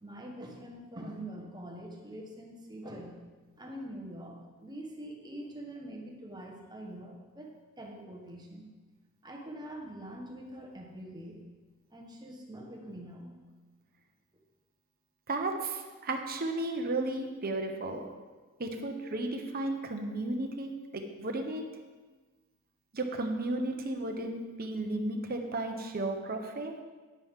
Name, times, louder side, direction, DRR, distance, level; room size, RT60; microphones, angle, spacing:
voice 1, 0.0-3.2 3.6-8.7 9.2-11.5 11.9-13.3, right 1 dB, 20° right, 1 dB, 1.3 m, -44 dB
voice 2, 15.3-18.0 18.6-21.6 22.9-26.7, right 2 dB, 45° right, 4 dB, 1.1 m, -34 dB
10.5 x 9.8 x 3.7 m, 1.3 s
head